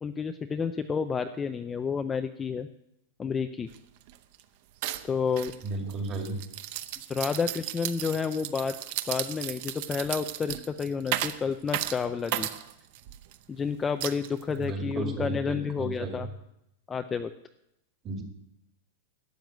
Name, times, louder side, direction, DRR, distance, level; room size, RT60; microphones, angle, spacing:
voice 1, 0.0-2.7 3.2-3.7 5.0-5.5 7.1-8.8 9.1-12.5 13.5-16.3 16.9-17.3, left 6 dB, 15° left, 8 dB, 0.4 m, -30 dB
sound 1, 3.7-3.8 4.1-4.4 4.8-13.4 14.0-14.7, right 13 dB, 45° right, 0.7 m, -35 dB
voice 2, 5.6-6.4 14.6-16.2 18.0-18.2, right 2 dB, 25° right, 3 dB, 2.2 m, -34 dB
12.5 x 7.7 x 9.2 m, 0.83 s
supercardioid pair, 165°, 0 cm